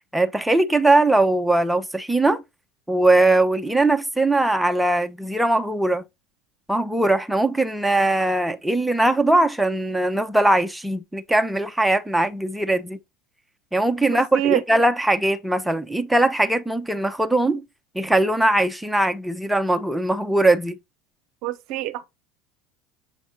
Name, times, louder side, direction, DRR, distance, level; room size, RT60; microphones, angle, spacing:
voice 1, 0.1-2.4 2.9-6.0 6.7-13.0 13.7-17.6 17.9-20.8, right 2 dB, 5° right, 0.9 m, -20 dB
voice 2, 21.4-22.0, right 13 dB, 65° right, 0.7 m, -24 dB
7.4 x 4.2 x 4.0 m
hypercardioid pair, 75°, 0 cm